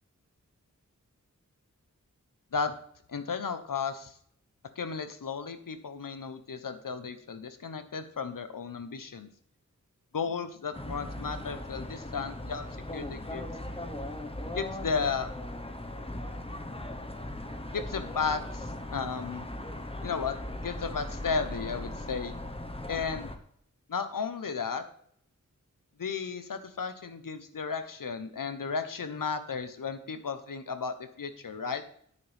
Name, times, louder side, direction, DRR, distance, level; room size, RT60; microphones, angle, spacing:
voice 1, 3.1-4.1 4.8-9.3 10.1-12.7 12.9-13.4 14.5-15.3 17.7-19.4 20.0-20.4 20.6-22.3 22.9-23.3 23.9-24.8 26.0-31.8, left 5 dB, 90° left, 10 dB, 1.0 m, -34 dB
sound 1, 10.7-23.4, left 1 dB, 20° left, 1.1 m, -38 dB
9.8 x 9.5 x 3.5 m, 0.65 s
wide cardioid pair, 55°, 32 cm